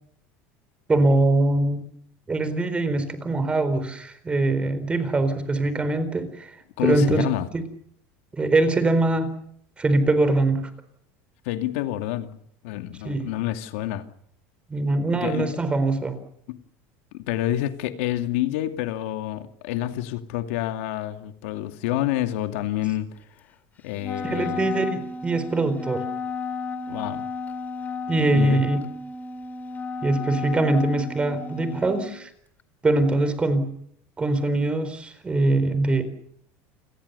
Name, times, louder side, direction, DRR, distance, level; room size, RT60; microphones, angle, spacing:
voice 1, 0.9-1.8 2.3-6.5 6.8-7.2 7.5-7.6 8.3-9.3 9.8-10.7 13.0-13.3 14.7-16.2 24.2-26.0 28.1-28.8 30.0-32.3 32.8-33.7 34.2-36.0, right 2 dB, 15° right, 4.3 m, -22 dB
voice 2, 6.8-7.5 11.4-14.0 15.1-15.6 16.5-16.6 17.1-23.1 23.8-24.7 26.9-27.2 28.3-28.6, left 13 dB, 80° left, 2.5 m, -28 dB
Wind instrument woodwind instrument, 24.0-32.1, left 4 dB, 25° left, 2.3 m, -33 dB
29.5 x 21.5 x 7.0 m
supercardioid pair, 135°, 7 cm